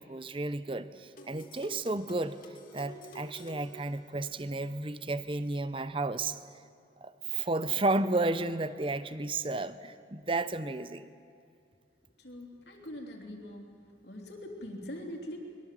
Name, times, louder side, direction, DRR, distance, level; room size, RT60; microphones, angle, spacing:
voice 1, 0.0-2.4 2.7-6.4 7.0-11.1, right 2 dB, 30° right, 13 dB, 0.8 m, -32 dB
sound 1, 1.2-4.6, equal, 50° left, 2.7 m, -50 dB
voice 2, 12.2-13.7 14.0-15.4, equal, 70° left, 2 dB, 3.3 m, -42 dB
23.5 x 21.5 x 7.6 m, 2.4 s
head